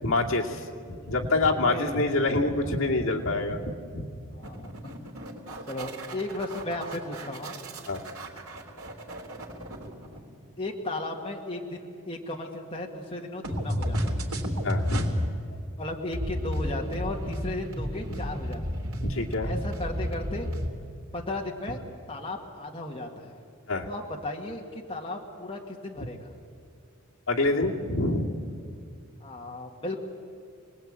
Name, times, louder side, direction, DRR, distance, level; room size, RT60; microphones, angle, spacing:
voice 1, 0.0-4.2 7.9-8.0 14.6-15.1 19.0-19.6 23.7-23.9 27.3-28.4, left 2 dB, 65° left, -1 dB, 2.5 m, -26 dB
voice 2, 1.6-2.0 2.3-2.9 4.3-5.1 5.7-7.5 10.6-14.3 15.8-18.6 19.4-20.5 21.1-23.4 23.9-26.3 29.2-30.0, left 1 dB, 25° left, 0 dB, 2.0 m, -35 dB
sound 1, 4.4-10.4 13.4-15.3 16.1-20.7, equal, 80° right, 3.5 m, -32 dB
27.5 x 20.0 x 8.9 m, 2.4 s
head